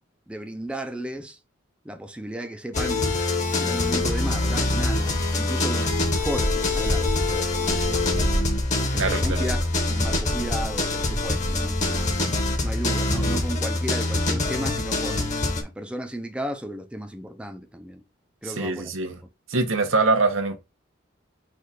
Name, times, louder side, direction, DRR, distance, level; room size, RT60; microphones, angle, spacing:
voice 1, 0.3-1.4 1.8-3.1 3.6-5.9 6.2-8.4 8.8-9.6 9.9-12.1 12.6-15.3 15.6-18.0 18.4-18.9 19.5-19.6, right 1 dB, 5° right, 0.5 m, -34 dB
sound 1, 2.7-15.6, left 2 dB, 40° left, 1.1 m, -25 dB
sound 2, 3.9-12.7, equal, 85° left, 1.5 m, -32 dB
voice 2, 9.0-9.5 18.4-19.2 19.5-20.6, right 3 dB, 90° right, 1.0 m, -23 dB
4.8 x 2.5 x 4.1 m
head